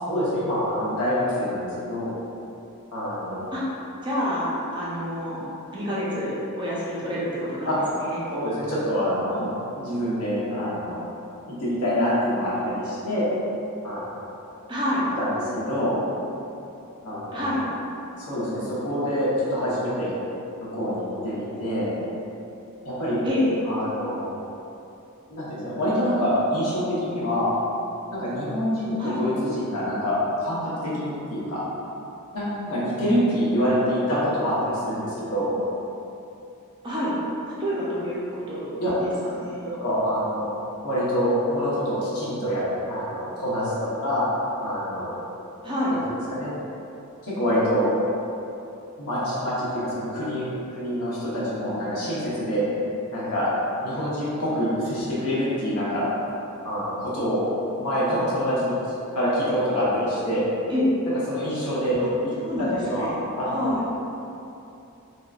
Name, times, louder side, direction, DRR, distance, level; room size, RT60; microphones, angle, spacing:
voice 1, 0.0-2.1 2.9-3.5 7.7-7.8 8.3-9.5 9.8-11.0 11.5-13.3 13.8-14.0 15.2-16.0 17.0-17.5 18.2-20.1 20.6-21.9 22.8-23.2 23.6-24.3 25.3-27.5 28.1-31.6 32.3-35.5 38.8-38.9 39.8-40.5 40.8-42.6 42.9-44.3 44.6-45.2 45.9-46.5 47.2-47.9 49.0-50.5 50.7-52.6 53.1-53.5 53.8-56.0 56.6-58.7 59.1-60.5 61.1-62.3 62.6-63.1 63.4-63.5, equal, 90° left, -9 dB, 1.1 m, -26 dB
voice 2, 4.0-5.4 5.7-8.2 14.7-15.0 17.3-17.6 23.2-23.5 29.0-29.2 36.8-37.2 37.5-38.9 39.2-39.7 45.6-45.9 60.7-60.8 62.0-62.1 62.4-63.1 63.4-63.8, left 1 dB, 20° right, -8 dB, 0.6 m, -28 dB
3.5 x 2.9 x 2.4 m, 2.8 s
head